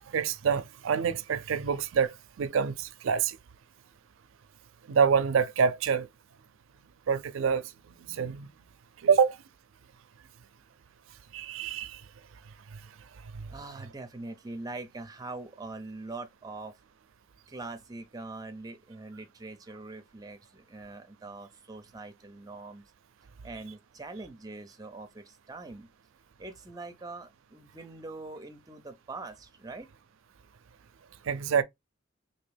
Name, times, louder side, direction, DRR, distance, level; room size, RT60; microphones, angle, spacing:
voice 1, 0.1-3.4 4.9-6.1 7.1-7.7 8.1-8.5 9.0-9.4 11.3-12.0 13.4-13.5 31.3-31.6, right 6 dB, 70° right, 0.4 m, -26 dB
voice 2, 13.5-16.7 17.5-22.8 23.4-25.9 26.4-29.9, right 3 dB, 15° right, 0.5 m, -43 dB
3.5 x 2.7 x 3.3 m
head